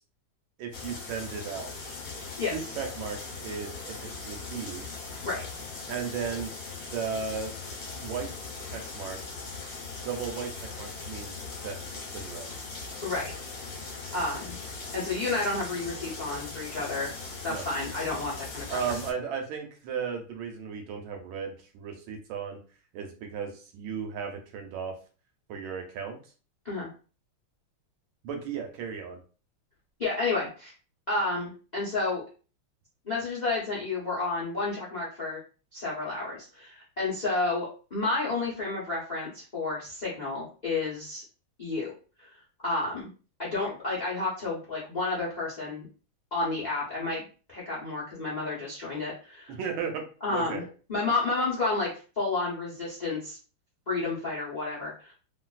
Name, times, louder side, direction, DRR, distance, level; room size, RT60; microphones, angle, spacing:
voice 1, 0.6-1.7 2.5-3.9 4.2-4.9 5.9-6.5 6.9-7.5 8.0-8.4 8.7-9.4 10.0-11.3 11.6-11.8 12.1-12.5 17.5-17.7 18.7-22.6 22.9-24.9 25.5-26.2 28.2-29.2 49.5-50.0 50.3-50.7, right 6 dB, 75° right, 3 dB, 1.3 m, -35 dB
sound 1, 0.7-19.1, left 4 dB, 60° left, 1.1 m, -40 dB
voice 2, 13.6-14.6 14.9-17.1 17.4-18.8 26.6-26.9 30.0-30.7 31.1-32.2 33.0-35.4 35.7-41.2 41.6-41.9 42.2-42.3 42.6-43.1 43.4-45.9 46.3-49.6 50.2-50.6 50.9-51.9 52.2-53.4 53.9-55.1, left 3 dB, 85° left, -5 dB, 0.4 m, -31 dB
3.2 x 2.6 x 2.3 m, 0.37 s
omnidirectional pair, 2.4 m